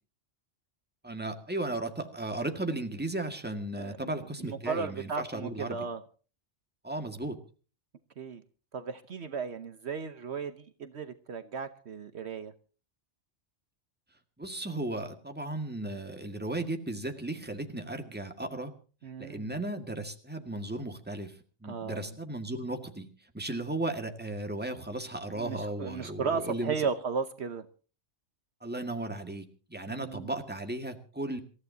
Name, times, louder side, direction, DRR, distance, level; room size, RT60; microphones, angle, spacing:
voice 1, 1.0-5.9 6.8-7.4 14.4-18.7 19.2-23.1 23.3-26.9 28.6-31.4, right 2 dB, 10° right, 1.9 m, -35 dB
voice 2, 3.8-4.1 4.4-6.0 8.2-8.4 8.7-12.5 19.0-19.5 21.7-22.1 25.3-27.7 29.9-30.3, right 5 dB, 65° right, 1.2 m, -35 dB
27.0 x 14.5 x 2.8 m
omnidirectional pair, 1.2 m